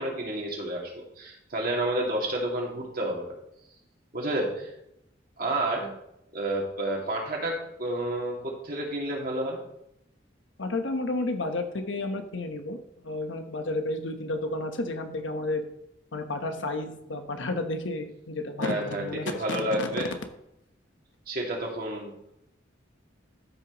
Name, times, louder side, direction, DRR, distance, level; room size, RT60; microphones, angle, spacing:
voice 1, 0.0-3.4 4.1-4.7 5.4-5.9 6.3-9.6 18.6-20.1 21.3-22.1, right 1 dB, 50° right, -1 dB, 2.4 m, -30 dB
voice 2, 10.6-12.8 13.0-15.6 16.1-19.9, left 2 dB, 90° left, 6 dB, 1.1 m, -31 dB
13.0 x 6.1 x 3.1 m, 0.80 s
head